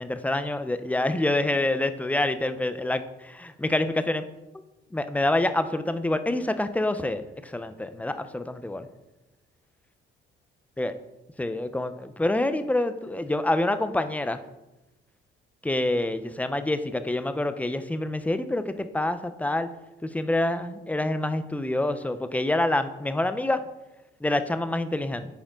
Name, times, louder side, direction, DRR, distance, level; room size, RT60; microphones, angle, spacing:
voice 1, 0.0-4.2 4.9-8.9 10.8-10.9 11.4-14.4 15.6-19.7 20.0-23.6 24.2-25.3, left 1 dB, 5° left, 11 dB, 0.5 m, -27 dB
8.8 x 4.9 x 3.7 m, 1.0 s
cardioid pair, 90°, 20 cm